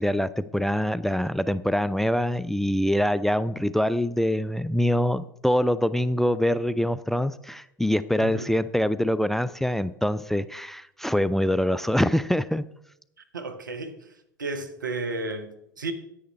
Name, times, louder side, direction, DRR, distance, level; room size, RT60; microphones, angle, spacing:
voice 1, 0.0-12.6, equal, 5° left, 0.3 m, -24 dB
voice 2, 8.2-8.5 13.3-14.1 14.4-15.9, right 3 dB, 85° right, 1.0 m, -33 dB
10.0 x 9.5 x 3.4 m
figure-of-eight pair, 75°, 10 cm